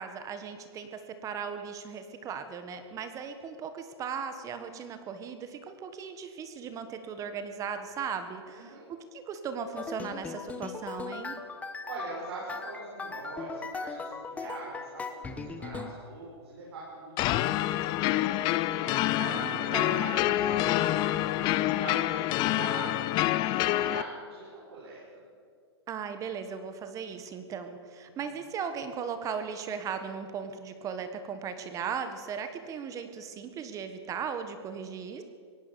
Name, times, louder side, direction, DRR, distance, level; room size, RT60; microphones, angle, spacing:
voice 1, 0.0-11.4 19.2-20.0 25.9-35.2, right 6 dB, 25° right, 9 dB, 1.5 m, -37 dB
voice 2, 8.5-8.9 11.8-19.3 19.6-25.2 28.0-28.2, right 3 dB, 65° right, -5 dB, 6.6 m, -43 dB
sound 1, 9.7-15.9, left 4 dB, 10° left, 1.3 m, -39 dB
sound 2, 17.2-24.0, left 15 dB, 30° left, 0.7 m, -27 dB
23.5 x 17.5 x 7.0 m, 2.2 s
hypercardioid pair, 140°, 14 cm